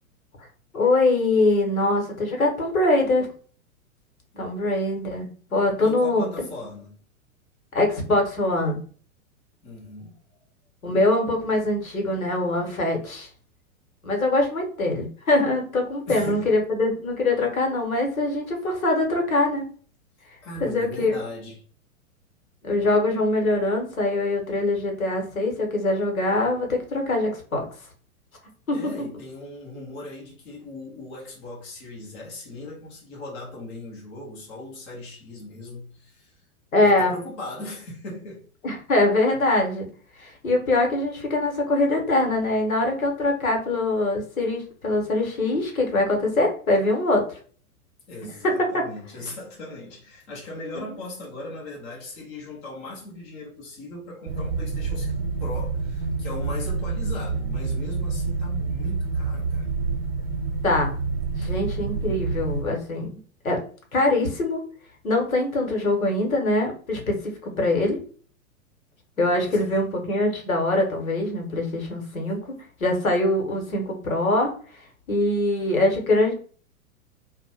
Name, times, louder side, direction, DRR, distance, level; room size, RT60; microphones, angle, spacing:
voice 1, 0.7-3.3 4.3-6.3 7.7-8.8 10.8-13.3 14.0-19.6 20.6-21.2 22.6-27.7 28.7-28.8 36.7-37.1 38.6-39.9 40.2-47.4 48.4-48.8 50.7-50.8 60.6-60.9 61.4-63.2 63.4-63.6 63.9-64.6 65.0-68.0 69.2-72.5 72.8-74.5 75.1-76.3, left 2 dB, 75° left, 1.0 m, -23 dB
voice 2, 5.8-7.0 9.6-10.4 16.1-16.7 20.4-21.6 28.7-36.3 36.8-38.4 48.1-59.7 61.4-61.5 69.4-69.8, left 2 dB, 15° left, 0.5 m, -38 dB
sound 1, 54.3-62.6, right 4 dB, 45° right, 0.4 m, -28 dB
2.5 x 2.1 x 2.8 m
figure-of-eight pair, 105°, 43 cm